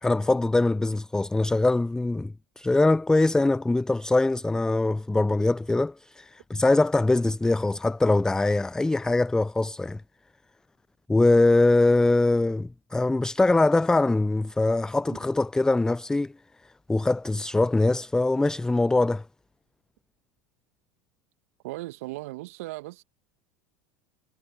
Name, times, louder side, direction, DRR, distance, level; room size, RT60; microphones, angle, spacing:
voice 1, 0.0-10.0 11.1-16.3 16.9-19.3, left 2 dB, 5° left, 0.5 m, -23 dB
voice 2, 21.6-23.0, right 20 dB, 65° right, 1.5 m, -37 dB
hypercardioid pair, 80°, 8 cm